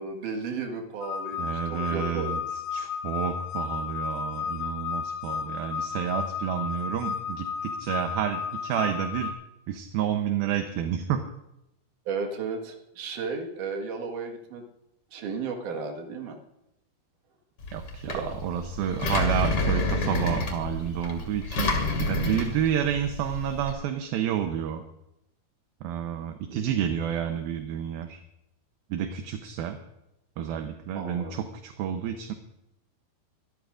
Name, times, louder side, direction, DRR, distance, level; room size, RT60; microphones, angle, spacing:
voice 1, 0.0-2.4 12.1-14.6 15.1-16.4 18.1-18.4 26.5-26.6 30.9-31.3, right 4 dB, 60° right, 3 dB, 2.9 m, -34 dB
sound 1, 1.0-9.3, left 7 dB, 65° left, 2.3 m, -33 dB
voice 2, 1.4-2.4 2.7-9.3 9.7-11.2 17.7-24.8 25.8-28.2 28.9-29.8 30.4-32.3, right 9 dB, 75° right, 6 dB, 2.5 m, -30 dB
Engine, 17.6-23.7, left 2 dB, 40° left, 2.7 m, -29 dB
24.5 x 13.5 x 2.5 m, 0.87 s
omnidirectional pair, 4.6 m